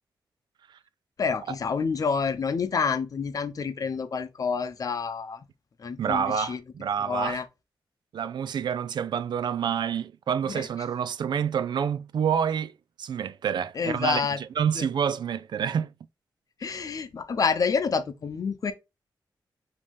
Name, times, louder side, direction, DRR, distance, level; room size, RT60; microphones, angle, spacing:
voice 1, 1.2-5.4 5.8-6.6 7.0-7.4 10.5-10.6 13.8-14.4 14.8-14.9 16.6-18.7, left 5 dB, 50° left, 0.7 m, -28 dB
voice 2, 6.0-7.4 8.1-12.7 13.0-15.9, right 8 dB, 75° right, 0.4 m, -28 dB
5.2 x 2.9 x 3.4 m
wide cardioid pair, 110°, 8 cm